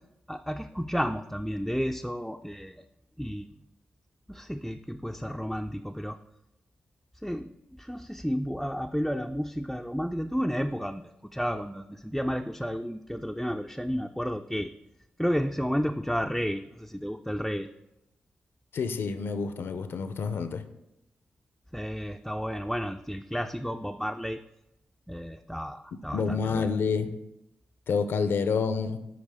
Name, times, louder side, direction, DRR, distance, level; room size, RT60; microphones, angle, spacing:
voice 1, 0.3-2.8 3.2-3.5 4.3-6.2 7.2-7.5 7.8-14.7 15.2-17.7 21.7-24.4 25.1-26.7, equal, ahead, 5 dB, 0.3 m, -32 dB
voice 2, 18.7-20.6 26.1-27.1 27.9-29.0, left 5 dB, 70° left, 10 dB, 0.6 m, -28 dB
9.5 x 4.7 x 3.5 m, 0.89 s
supercardioid pair, 45°, 4 cm